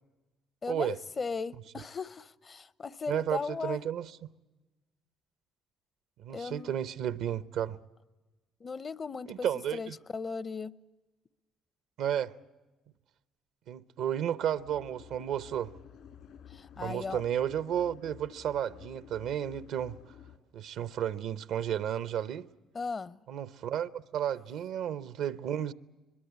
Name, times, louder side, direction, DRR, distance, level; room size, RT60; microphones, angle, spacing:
voice 1, 0.6-3.8 6.3-6.7 8.6-9.5 9.7-10.7 16.5-17.2 22.7-23.2, left 4 dB, 40° left, 0.7 m, -37 dB
voice 2, 3.1-4.1 6.2-7.8 9.3-10.0 12.0-12.3 13.7-15.7 16.8-20.0 20.5-22.5 23.3-25.7, right 10 dB, 75° right, 0.7 m, -32 dB
sound 1, 14.6-20.4, left 9 dB, 75° left, 2.7 m, -52 dB
22.5 x 22.0 x 8.2 m
supercardioid pair, 70°, 0 cm